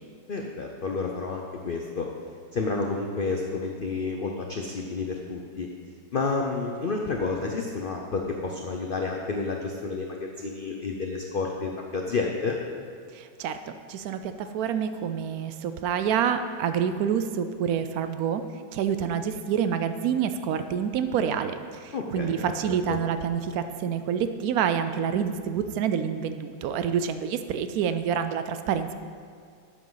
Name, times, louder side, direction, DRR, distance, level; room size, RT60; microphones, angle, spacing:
voice 1, 0.3-2.1 2.5-5.7 6.1-12.6 21.9-23.0, left 4 dB, 60° left, 1 dB, 0.5 m, -30 dB
voice 2, 13.1-18.4 18.7-28.9, right 8 dB, 70° right, 9 dB, 0.9 m, -27 dB
12.0 x 8.4 x 4.0 m, 2.2 s
omnidirectional pair, 1.9 m